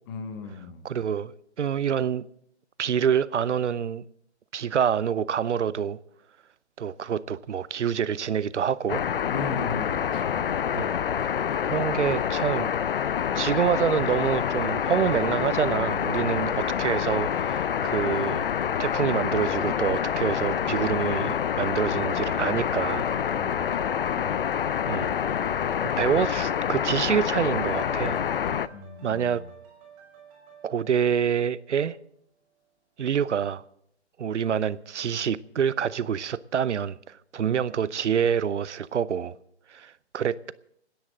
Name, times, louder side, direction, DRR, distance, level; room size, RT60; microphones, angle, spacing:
voice 1, 0.1-0.8 9.3-10.4 23.3-23.9 28.7-29.4, left 4 dB, 20° left, 1.0 m, -37 dB
voice 2, 0.8-2.2 2.8-4.0 4.5-6.0 6.8-9.0 10.7-10.9 11.6-12.7 13.3-18.5 18.8-23.1 24.9-25.1 26.0-28.2 29.0-29.4 30.6-32.0 33.0-33.6 34.2-39.4 39.7-40.5, right 8 dB, 80° right, 0.7 m, -26 dB
sound 1, 8.9-28.7, left 8 dB, 55° left, 0.5 m, -27 dB
sound 2, 18.4-32.1 32.6-32.7, right 7 dB, 20° right, 5.0 m, -52 dB
29.5 x 10.0 x 3.7 m
hypercardioid pair, 155°, 35 cm